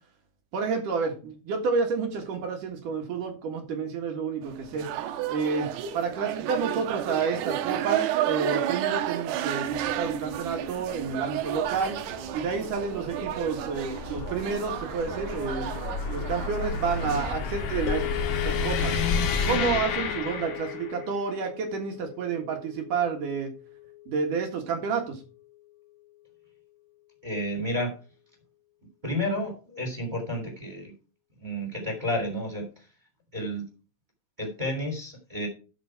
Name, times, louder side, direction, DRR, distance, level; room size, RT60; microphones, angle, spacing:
voice 1, 0.5-4.9 5.3-12.0 12.3-15.7 16.1-18.0 18.4-19.0 19.4-23.5 24.1-25.2, right 5 dB, 60° right, 3 dB, 2.5 m, -30 dB
sound 1, 4.4-17.3, right 12 dB, 80° right, 2.3 m, -32 dB
sound 2, 9.7-21.1, left 5 dB, 60° left, 3.0 m, -32 dB
sound 3, 17.9-26.2, left 16 dB, 90° left, 3.2 m, -39 dB
voice 2, 27.2-27.9 29.0-30.9 31.4-32.7 33.3-33.6 34.4-35.5, left 1 dB, 10° right, 2 dB, 2.3 m, -31 dB
13.0 x 5.6 x 4.8 m, 0.35 s
omnidirectional pair, 5.6 m